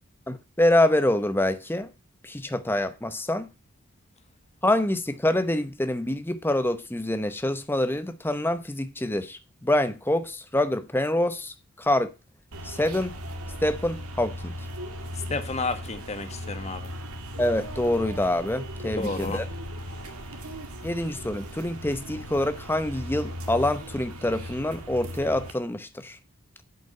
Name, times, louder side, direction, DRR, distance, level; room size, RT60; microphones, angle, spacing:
voice 1, 0.3-1.9 2.2-3.5 4.6-12.1 12.6-13.2 13.6-14.5 17.4-19.4 20.8-26.2, left 1 dB, 10° left, 0.8 m, -26 dB
sound 1, 12.5-25.5, equal, 90° right, 2.0 m, -37 dB
voice 2, 15.3-16.9 18.9-19.4, left 3 dB, 30° left, 1.3 m, -31 dB
8.1 x 8.1 x 5.4 m
head